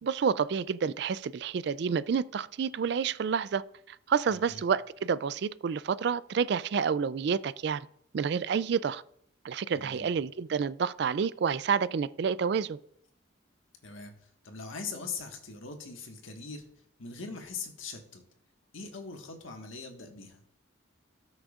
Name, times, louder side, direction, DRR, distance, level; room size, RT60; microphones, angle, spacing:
voice 1, 0.0-3.6 3.9-7.9 8.1-9.0 9.4-12.8, right 6 dB, 55° right, 18 dB, 0.3 m, -29 dB
voice 2, 4.3-4.6 9.7-10.1 13.8-14.1 14.4-16.6 17.0-18.2 18.7-20.4, left 4 dB, 90° left, 3 dB, 1.6 m, -41 dB
18.0 x 6.3 x 2.5 m, 0.70 s
head